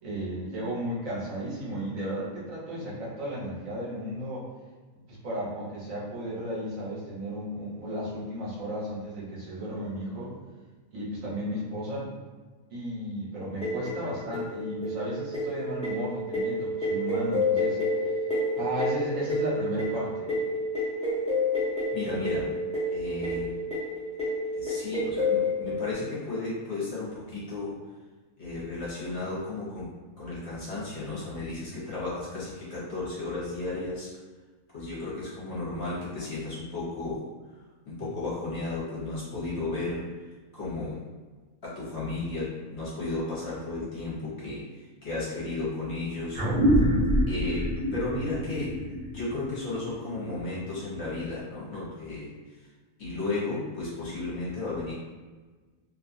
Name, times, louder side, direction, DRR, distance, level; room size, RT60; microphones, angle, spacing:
voice 1, 0.0-4.4 5.1-10.3 10.9-12.1 12.7-17.8 18.6-20.3, equal, 70° right, -7 dB, 1.4 m, -34 dB
sound 1, 13.6-25.9, left 1 dB, 5° left, 0.8 m, -29 dB
voice 2, 21.9-22.5 22.9-23.5 24.5-27.7 28.4-29.9 30.2-34.1 34.7-37.2 37.9-40.0 40.5-41.0 41.6-46.4 47.3-48.7 49.1-52.3 52.5-52.7 53.0-54.9, left 2 dB, 55° left, -8 dB, 1.1 m, -34 dB
sound 2, 46.3-51.2, equal, 55° right, 0.7 m, -27 dB
2.8 x 2.3 x 2.6 m, 1.3 s
omnidirectional pair, 1.4 m